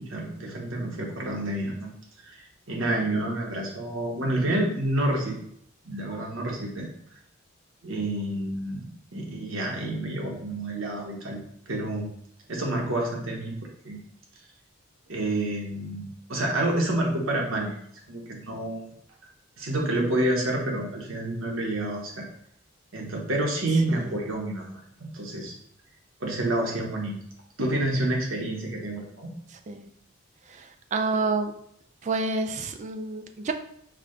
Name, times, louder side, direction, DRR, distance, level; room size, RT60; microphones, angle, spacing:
voice 1, 0.0-1.9 2.2-5.4 5.8-6.9 7.8-11.4 11.7-12.1 12.5-13.5 13.8-14.0 15.1-17.8 18.1-18.8 19.6-22.3 22.9-25.5 26.2-27.2 27.6-29.3, right 1 dB, 75° right, -1 dB, 1.1 m, -28 dB
voice 2, 30.5-31.5 32.0-33.5, right 3 dB, 35° right, 7 dB, 0.3 m, -29 dB
4.8 x 2.3 x 3.7 m, 0.70 s
head